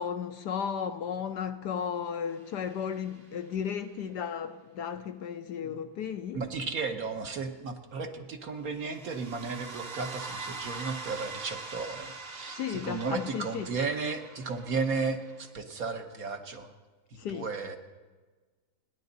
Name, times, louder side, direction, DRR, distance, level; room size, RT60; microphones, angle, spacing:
voice 1, 0.0-6.4 12.5-13.7 17.2-17.5, left 7 dB, 70° left, 1.1 m, -34 dB
sound 1, 2.5-3.5 8.8-15.5, right 4 dB, 35° right, 1.1 m, -43 dB
voice 2, 6.3-16.7 17.1-17.8, right 4 dB, 50° right, 1.3 m, -34 dB
29.5 x 10.5 x 4.0 m
omnidirectional pair, 2.2 m